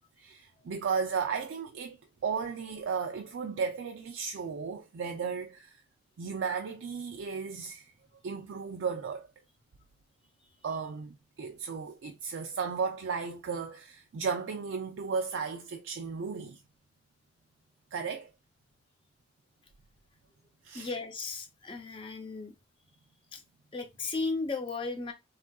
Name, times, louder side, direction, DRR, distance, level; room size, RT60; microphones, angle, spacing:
voice 1, 0.2-5.8 6.2-7.9 8.2-9.3 10.6-16.6 17.9-18.3 20.6-20.9, right 5 dB, 85° right, 0.4 m, -35 dB
voice 2, 20.7-22.5 23.3-23.4 23.7-25.1, left 3 dB, 30° left, 0.5 m, -35 dB
3.5 x 2.4 x 2.3 m
head